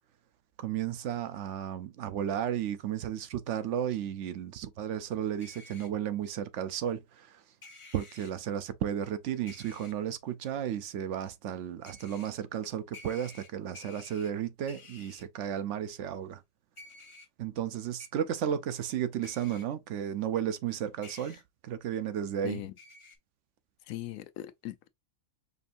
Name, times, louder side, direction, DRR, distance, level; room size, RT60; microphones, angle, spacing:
voice 1, 0.6-7.4 7.9-16.4 17.4-22.6, right 9 dB, 70° right, 0.9 m, -33 dB
sound 1, 5.4-5.9 7.6-8.3 9.5-9.9 11.8-12.3 12.9-14.3 14.7-15.2 16.8-17.3 18.0-18.1 19.2-19.6 21.0-21.4 22.8-23.2, left 3 dB, 30° left, 0.6 m, -51 dB
voice 2, 23.9-24.9, left 14 dB, 85° left, 1.0 m, -39 dB
5.2 x 2.6 x 2.5 m
omnidirectional pair, 1.4 m